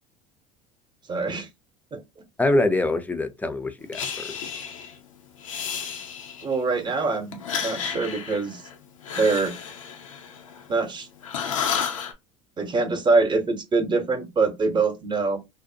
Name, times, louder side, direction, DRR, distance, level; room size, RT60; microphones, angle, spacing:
voice 1, 1.1-1.5 1.9-2.0 6.4-8.6 9.1-9.5 10.7-11.1 12.6-15.4, right 3 dB, 30° right, 0.8 m, -24 dB
voice 2, 2.4-4.4, left 2 dB, 10° left, 0.5 m, -24 dB
Breathing, 3.9-5.0 5.4-6.6 7.3-10.9 11.2-12.1, left 7 dB, 90° left, 0.5 m, -32 dB
2.6 x 2.0 x 2.6 m
hypercardioid pair, 75°, 16 cm